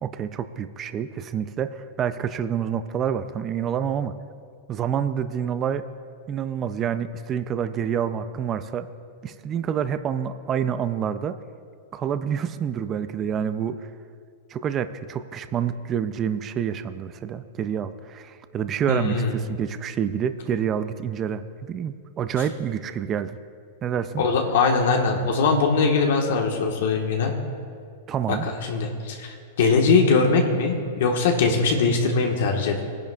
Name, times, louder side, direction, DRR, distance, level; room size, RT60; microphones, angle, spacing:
voice 1, 0.0-4.2 4.7-5.9 6.3-8.9 9.2-11.4 11.9-13.9 14.5-23.4 23.8-24.2 28.1-28.5, right 8 dB, 25° right, 11 dB, 0.4 m, -28 dB
voice 2, 18.9-19.4 24.2-27.3 28.3-32.8, left 4 dB, 75° left, 2 dB, 1.4 m, -21 dB
20.0 x 10.5 x 2.4 m, 2.2 s
supercardioid pair, 145°, 0 cm